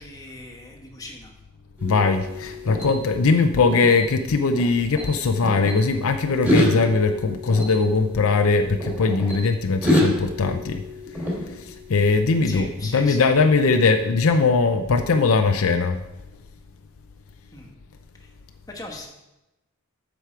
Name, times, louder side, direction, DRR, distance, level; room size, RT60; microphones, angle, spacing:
voice 1, 0.0-1.3 12.4-13.3 17.5-17.7 18.2-18.3 18.7-19.1, left 2 dB, 15° left, 0 dB, 1.3 m, -39 dB
voice 2, 1.8-10.8 11.5-16.0, left 4 dB, 65° left, 6 dB, 0.5 m, -20 dB
sound 1, 1.8-4.7 5.0-5.8 6.3-9.4 9.8-12.1, left 1 dB, 5° right, 2.7 m, -27 dB
8.3 x 6.3 x 4.5 m, 0.96 s
head